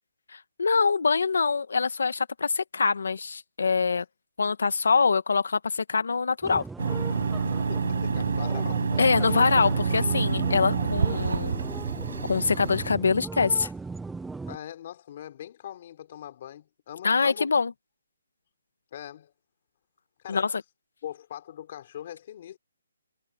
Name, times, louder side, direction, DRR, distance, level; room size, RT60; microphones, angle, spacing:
voice 1, 0.3-4.0 4.4-6.6 9.0-11.6 12.3-13.7 17.0-17.7 20.3-20.5, left 5 dB, 70° left, 1.6 m, -24 dB
sound 1, 6.4-14.6, right 3 dB, 5° right, 0.7 m, -37 dB
sound 2, 6.8-12.9, right 5 dB, 65° right, 5.8 m, -27 dB
voice 2, 7.7-8.8 14.5-17.7 18.9-19.3 20.2-20.5 21.0-22.6, left 11 dB, 30° left, 3.8 m, -41 dB
hypercardioid pair, 175°, 0 cm